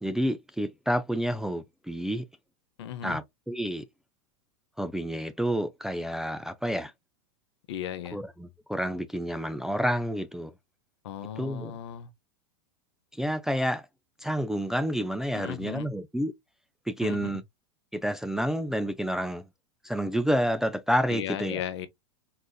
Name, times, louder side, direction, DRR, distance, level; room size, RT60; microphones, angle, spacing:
voice 1, 0.0-2.2 3.0-3.8 4.8-6.9 8.1-10.5 11.4-11.8 13.2-13.9 14.2-16.3 16.9-17.4 17.9-19.4 19.8-21.6, equal, 5° right, 0.3 m, -29 dB
voice 2, 2.8-3.2 7.7-8.2 11.0-12.1 15.3-15.9 17.0-17.4 21.1-21.9, left 10 dB, 70° left, 0.8 m, -36 dB
4.1 x 2.4 x 2.3 m
hypercardioid pair, 115°, 15 cm